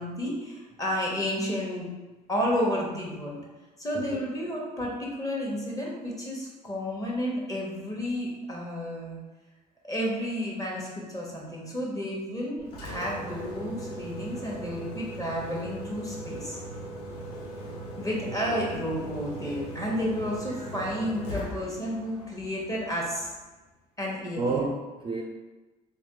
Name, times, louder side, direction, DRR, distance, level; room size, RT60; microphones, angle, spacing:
voice 1, 0.0-1.9 2.3-3.4 3.8-9.2 9.8-16.6 18.0-23.3 24.0-24.6, equal, 15° left, -3 dB, 1.1 m, -31 dB
Engine, 12.6-23.5, right 1 dB, 85° left, 0.6 m, -39 dB
voice 2, 18.3-18.7 20.5-20.7 21.3-21.6 24.4-25.2, right 3 dB, 25° right, 0 dB, 0.4 m, -32 dB
3.2 x 2.3 x 3.0 m, 1.2 s
hypercardioid pair, 55°, 19 cm